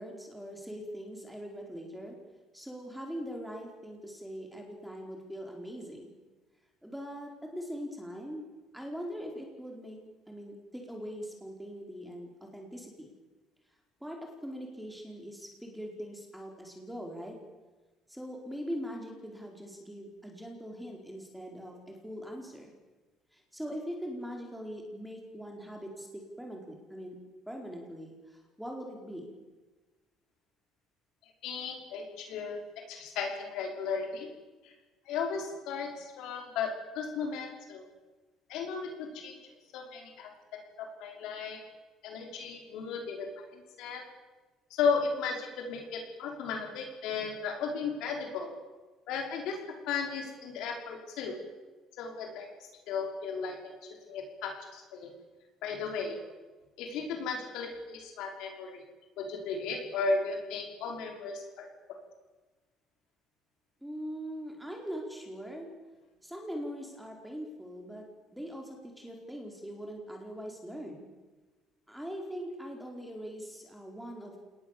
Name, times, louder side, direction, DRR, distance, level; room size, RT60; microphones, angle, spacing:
voice 1, 0.0-2.2 2.5-6.1 6.8-8.5 8.7-10.0 10.3-13.1 14.0-17.4 18.1-22.7 23.3-27.1 27.5-29.3 63.8-65.7 66.2-68.0 68.3-71.1 71.9-74.4, equal, ahead, 1 dB, 4.4 m, -41 dB
voice 2, 31.4-32.6 32.9-34.3 34.6-34.7 35.1-37.8 38.5-41.6 42.0-44.0 44.7-48.5 49.1-49.6 49.9-51.4 52.0-52.5 52.9-53.8 54.1-55.1 55.6-56.2 56.8-58.8 59.2-61.7, left 5 dB, 80° left, 2 dB, 5.4 m, -35 dB
28.0 x 19.5 x 7.4 m, 1.2 s
cardioid pair, 130°, 0 cm